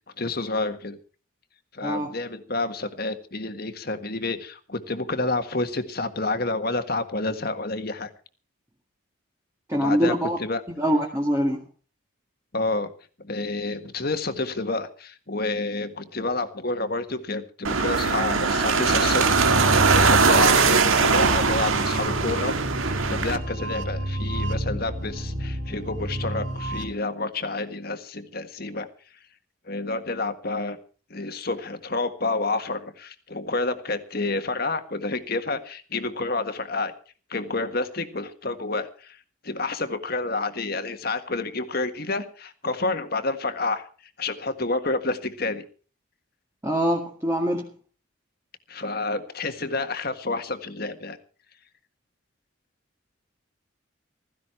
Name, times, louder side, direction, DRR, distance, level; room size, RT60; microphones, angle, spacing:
voice 1, 0.2-1.0 1.7-8.1 9.7-10.6 12.5-12.9 13.2-22.5 23.1-28.9 29.7-30.8 31.1-36.9 37.3-39.2 39.4-43.9 44.2-45.6 48.7-51.2, left 3 dB, 45° left, 8 dB, 1.6 m, -29 dB
voice 2, 1.8-2.2 9.7-10.4 10.7-11.6 46.6-47.7, equal, 15° right, -1 dB, 1.9 m, -24 dB
sound 1, 17.6-23.4, right 4 dB, 80° right, 1.7 m, -21 dB
sound 2, 18.9-26.9, right 1 dB, 60° right, 2.7 m, -30 dB
16.0 x 15.0 x 4.5 m, 0.39 s
head